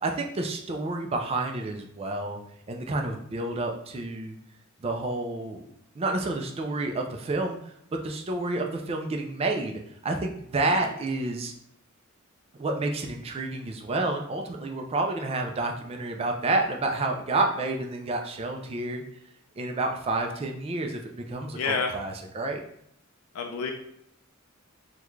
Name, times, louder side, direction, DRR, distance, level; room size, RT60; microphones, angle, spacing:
voice 1, 0.0-2.4 2.7-4.4 4.8-5.6 6.0-7.6 7.9-11.5 12.6-19.0 19.6-22.6, right 2 dB, 25° right, 3 dB, 0.3 m, -29 dB
voice 2, 21.5-21.9 23.3-23.7, left 5 dB, 75° left, 2 dB, 0.4 m, -28 dB
3.6 x 2.2 x 3.0 m, 0.75 s
head